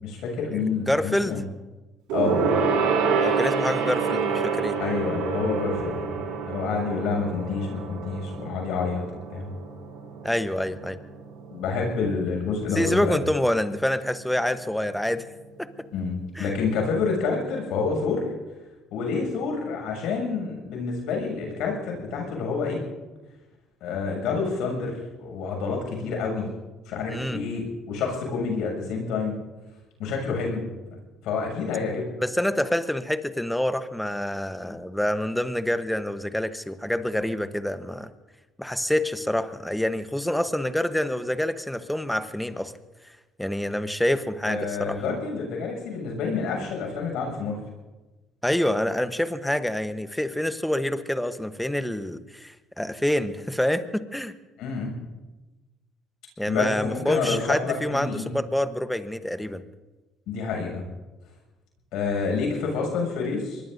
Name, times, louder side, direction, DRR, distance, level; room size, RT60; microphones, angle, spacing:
voice 1, 0.0-1.4 2.1-2.5 4.8-9.0 9.3-9.5 11.5-13.2 15.9-18.3 18.9-22.8 23.8-26.5 26.8-29.4 30.0-30.7 31.2-32.1 44.4-47.6 54.6-54.9 56.5-58.3 60.3-60.8 61.9-63.6, left 4 dB, 75° left, 1 dB, 6.8 m, -28 dB
voice 2, 0.5-1.4 3.2-4.8 10.2-11.0 12.7-15.2 15.6-15.7 16.3-16.5 27.1-27.4 32.2-38.1 38.6-42.7 43.4-45.0 48.4-54.3 56.4-59.6, left 1 dB, 5° left, 10 dB, 1.0 m, -27 dB
Gong, 2.1-11.9 12.2-12.4 12.7-12.8, right 5 dB, 85° right, 5.2 m, -27 dB
24.5 x 21.0 x 2.7 m, 1.2 s
cardioid pair, 95°, 0 cm